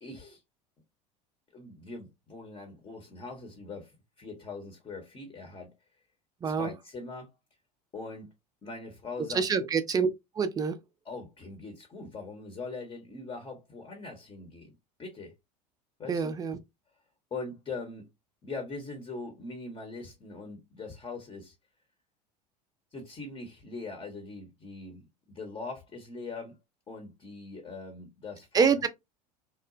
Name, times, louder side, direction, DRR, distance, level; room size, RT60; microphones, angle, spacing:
voice 1, 0.0-0.4 1.5-5.7 6.4-7.3 7.9-8.3 8.6-9.7 11.0-14.7 15.0-15.3 16.0-16.4 17.3-18.1 18.4-21.5 22.9-26.6 26.9-28.9, left 3 dB, 25° left, 0.8 m, -41 dB
voice 2, 9.3-10.1 10.4-10.8 16.1-16.6 28.5-28.9, right 6 dB, 20° right, 0.4 m, -26 dB
2.9 x 2.0 x 2.5 m
figure-of-eight pair, 70°, 21 cm